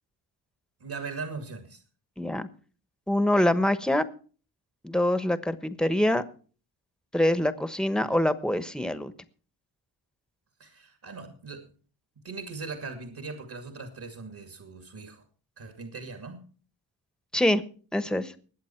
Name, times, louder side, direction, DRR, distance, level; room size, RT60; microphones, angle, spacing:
voice 1, 0.8-1.8 10.6-11.7 12.2-15.2 15.6-16.4, right 4 dB, 50° right, 6 dB, 2.5 m, -39 dB
voice 2, 2.2-2.5 3.1-4.0 4.8-6.2 7.1-9.1 17.3-17.6 17.9-18.3, left 1 dB, ahead, 12 dB, 1.1 m, -24 dB
20.5 x 8.2 x 4.5 m, 0.40 s
cardioid pair, 80°, 49 cm